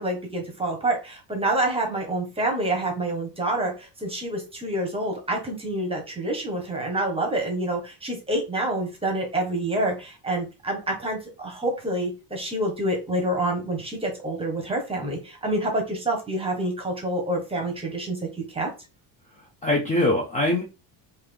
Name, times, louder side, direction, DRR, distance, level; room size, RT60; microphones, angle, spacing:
voice 1, 0.0-18.7, right 1 dB, 10° right, 1 dB, 1.0 m, -27 dB
voice 2, 19.4-20.6, left 1 dB, 15° left, -2 dB, 0.5 m, -23 dB
3.7 x 2.9 x 3.3 m, 0.29 s
cardioid pair, 170°, 45 cm